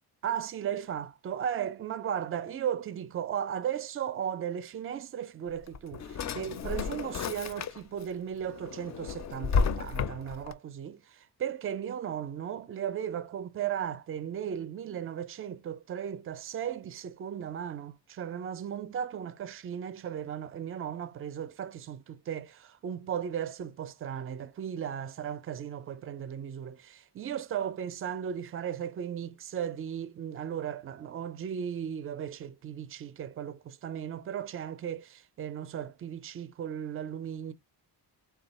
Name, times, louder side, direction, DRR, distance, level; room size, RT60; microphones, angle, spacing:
voice 1, 0.2-37.5, right 9 dB, 35° right, 0.4 m, -36 dB
Drawer open or close, 5.5-8.0 8.5-10.5, left 5 dB, 45° left, 0.4 m, -32 dB
3.6 x 2.3 x 4.0 m
wide cardioid pair, 145°, 42 cm